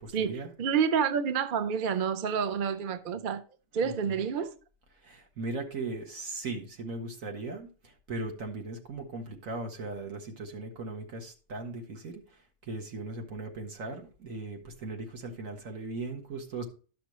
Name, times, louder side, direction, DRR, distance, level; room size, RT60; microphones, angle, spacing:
voice 1, 0.0-0.5 3.8-4.2 5.0-16.7, right 2 dB, 65° right, 1.9 m, -38 dB
voice 2, 0.6-3.4 3.7-4.5, right 7 dB, 50° right, 0.6 m, -28 dB
12.0 x 6.1 x 3.1 m
omnidirectional pair, 1.5 m